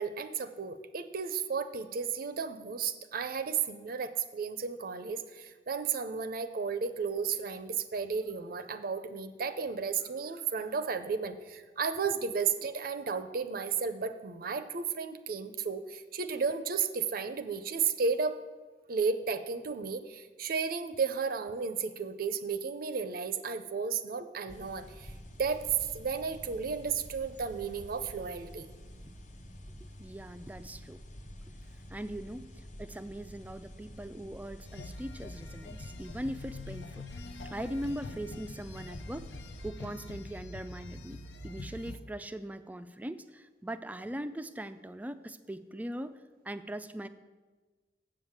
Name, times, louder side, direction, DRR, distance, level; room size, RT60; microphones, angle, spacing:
voice 1, 0.0-18.4 18.9-25.1 25.4-28.7, right 5 dB, 55° right, 10 dB, 0.5 m, -33 dB
sound 1, 24.5-39.7, equal, 45° left, 0.8 m, -49 dB
voice 2, 30.0-31.0 31.9-37.2 37.5-39.3 39.6-46.2 46.4-47.1, right 1 dB, 10° right, 11 dB, 0.3 m, -40 dB
sound 2, 34.6-42.0, left 2 dB, 75° left, 0.6 m, -45 dB
7.7 x 6.5 x 7.3 m, 1.3 s
head